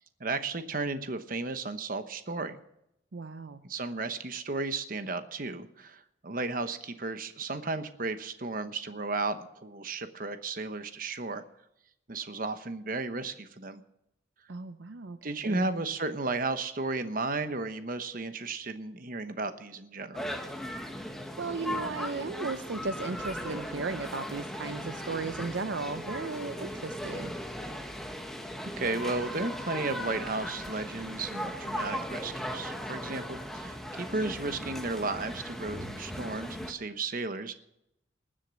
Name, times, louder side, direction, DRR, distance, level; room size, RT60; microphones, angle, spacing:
voice 1, 0.2-2.6 3.6-11.4 12.1-13.8 15.2-20.2 28.8-37.6, right 3 dB, 50° right, 9 dB, 1.0 m, -34 dB
voice 2, 3.1-3.6 14.5-15.2 15.4-15.6 21.4-27.3, right 4 dB, 75° right, 10 dB, 0.6 m, -36 dB
sound 1, 20.1-36.7, equal, ahead, 1.2 m, -38 dB
20.0 x 7.5 x 6.3 m, 0.80 s
head